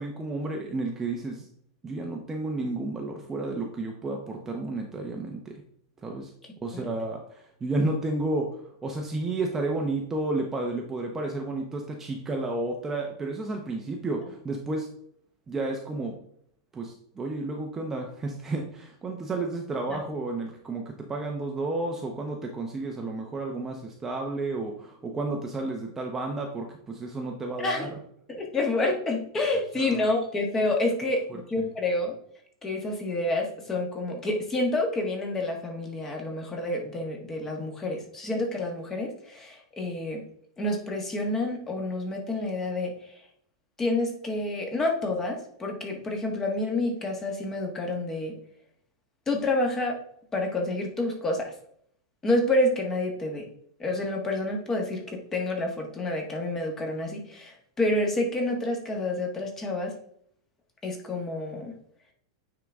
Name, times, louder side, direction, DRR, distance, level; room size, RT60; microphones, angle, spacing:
voice 1, 0.0-1.5 1.8-5.5 6.0-6.3 6.6-14.9 15.5-16.1 16.7-27.9 29.8-30.0 31.3-31.7, right 2 dB, 15° right, 1 dB, 0.7 m, -32 dB
voice 2, 27.6-27.9 28.3-32.1 32.6-40.2 40.6-43.1 43.8-48.3 49.3-49.9 50.3-51.5 52.2-53.4 53.8-59.9 60.8-61.7, left 2 dB, 15° left, 2 dB, 1.4 m, -28 dB
9.2 x 3.8 x 3.5 m, 0.67 s
supercardioid pair, 145°, 3 cm